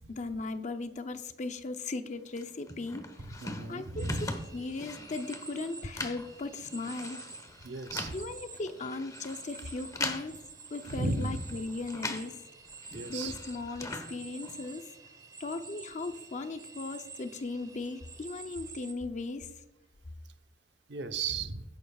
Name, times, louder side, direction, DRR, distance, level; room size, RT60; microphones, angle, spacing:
voice 1, 0.1-3.4 3.7-7.2 8.1-10.4 10.7-12.4 13.1-14.9 15.4-19.5, left 3 dB, 45° left, 8 dB, 0.6 m, -37 dB
sound 1, 2.4-12.4 12.7-14.7, left 2 dB, 20° left, 1.2 m, -42 dB
voice 2, 3.2-4.4 7.6-8.1 10.9-11.4 12.9-13.4 20.9-21.6, right 3 dB, 70° right, 7 dB, 0.9 m, -35 dB
sound 2, 4.0-18.9, right 4 dB, 20° right, 1.0 m, -49 dB
21.0 x 10.5 x 2.4 m, 0.98 s
head